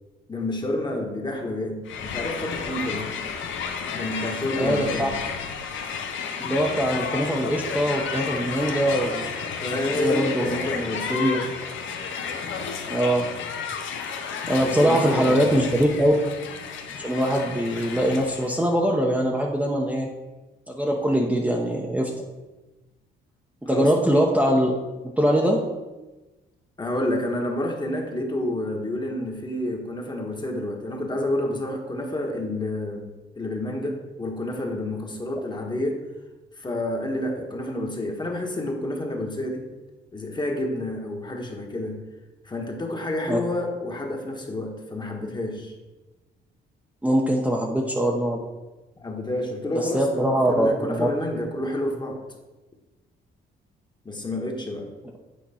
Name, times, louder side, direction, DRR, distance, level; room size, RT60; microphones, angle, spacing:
voice 1, 0.3-3.1 3.9-5.2 9.6-11.5 14.6-15.6 23.7-23.9 26.8-33.1 33.3-36.0 36.5-39.7 40.1-42.0 42.4-45.8 49.0-52.2 54.0-54.9, left 1 dB, 20° left, 1 dB, 1.3 m, -29 dB
Crowd, 1.8-18.5, left 6 dB, 75° left, 0.9 m, -32 dB
voice 2, 4.6-5.1 6.4-9.3 9.7-10.4 11.1-11.4 12.9-13.3 14.5-16.1 17.0-20.1 20.7-22.1 23.6-24.7 25.2-25.6 43.3-43.4 47.0-48.4 49.7-51.1, equal, 5° right, -2 dB, 0.8 m, -22 dB
8.5 x 4.4 x 4.3 m, 1.1 s
cardioid pair, 90°, 20 cm